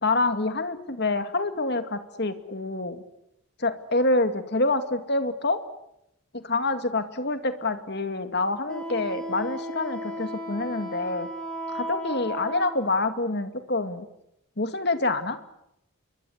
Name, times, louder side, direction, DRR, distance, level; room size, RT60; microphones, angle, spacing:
voice 1, 0.0-3.0 3.6-5.6 6.3-11.3 11.7-14.1 14.6-15.4, left 2 dB, 50° left, 9 dB, 2.3 m, -27 dB
Wind instrument woodwind instrument, 8.7-12.8, equal, 5° left, 7.1 m, -35 dB
28.5 x 23.0 x 8.2 m, 0.80 s
head